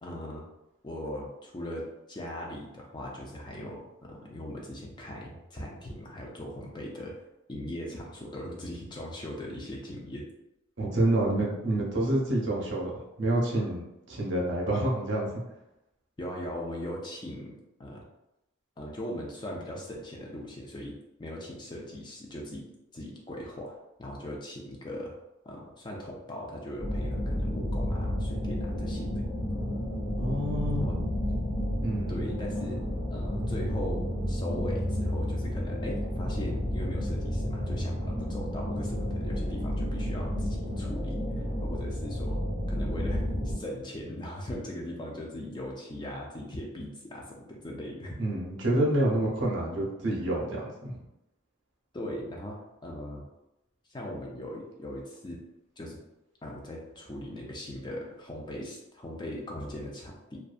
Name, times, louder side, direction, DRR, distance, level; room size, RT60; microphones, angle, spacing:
voice 1, 0.0-0.4 0.8-7.1 7.5-10.2 16.2-18.0 18.8-22.6 22.9-25.1 25.4-29.2 30.7-31.0 32.1-32.8 33.1-42.4 42.7-48.2 51.9-53.3 53.9-55.4 55.8-56.0 56.4-60.4, left 1 dB, 20° left, -1 dB, 0.4 m, -39 dB
voice 2, 10.8-15.3 30.2-30.9 31.8-32.1 48.2-51.0, right 1 dB, 55° right, -3 dB, 0.6 m, -28 dB
sound 1, 26.8-43.5, equal, 55° left, 0.9 m, -31 dB
2.6 x 2.2 x 2.4 m, 0.92 s
head